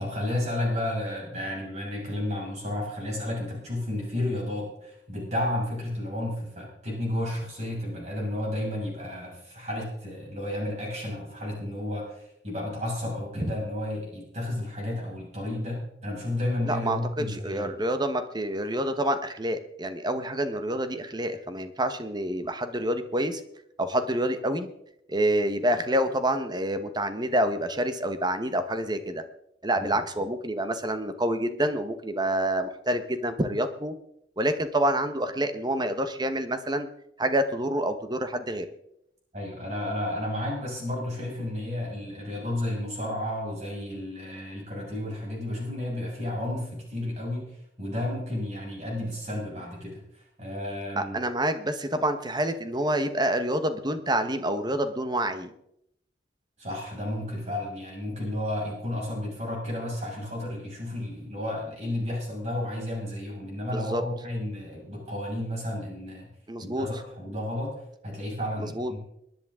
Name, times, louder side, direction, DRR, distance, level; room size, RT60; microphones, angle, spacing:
voice 1, 0.0-17.7 29.7-30.0 39.3-51.2 56.6-66.3 66.6-67.7 68.0-69.0, left 1 dB, 40° right, -2 dB, 6.4 m, -32 dB
voice 2, 16.6-23.4 23.8-24.7 25.1-29.2 29.6-33.9 34.4-36.9 37.2-38.7 51.0-55.5 63.7-64.0 66.5-66.9 68.6-68.9, right 1 dB, 25° right, 9 dB, 1.2 m, -27 dB
24.0 x 11.0 x 3.7 m, 0.76 s
head